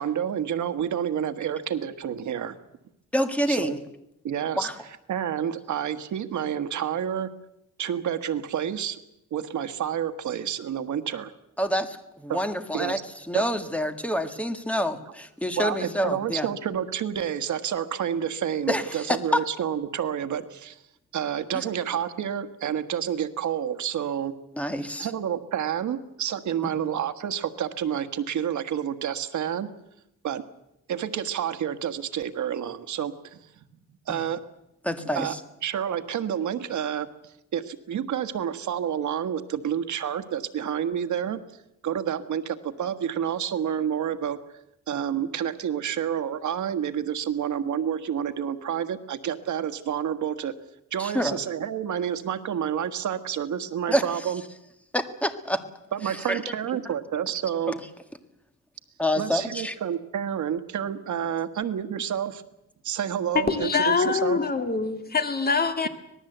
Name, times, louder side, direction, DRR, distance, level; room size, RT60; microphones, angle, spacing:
voice 1, 0.0-2.6 3.5-3.7 4.2-4.7 5.1-7.3 7.8-9.0 9.3-11.3 12.3-12.4 12.7-12.9 13.3-13.4 15.6-20.8 21.1-24.3 25.0-29.7 30.2-30.4 30.9-33.6 34.1-34.4 35.1-35.4 35.6-37.1 37.5-41.4 41.8-44.4 44.9-50.5 50.9-54.4 55.9-57.7 59.1-62.4 62.8-64.4, right 9 dB, 80° right, 10 dB, 1.5 m, -29 dB
voice 2, 3.1-3.8 4.6-4.8 11.6-13.0 13.3-16.5 18.7-19.4 24.6-25.1 26.8-26.9 34.1-34.2 34.8-35.3 51.0-51.4 53.9-54.0 54.9-55.6 56.3-56.4 57.7-57.8 59.0-59.7, equal, 5° left, 8 dB, 1.8 m, -27 dB
voice 3, 63.3-65.9, left 5 dB, 30° left, 8 dB, 2.2 m, -24 dB
25.5 x 19.5 x 8.0 m, 0.84 s
wide cardioid pair, 145°, 29 cm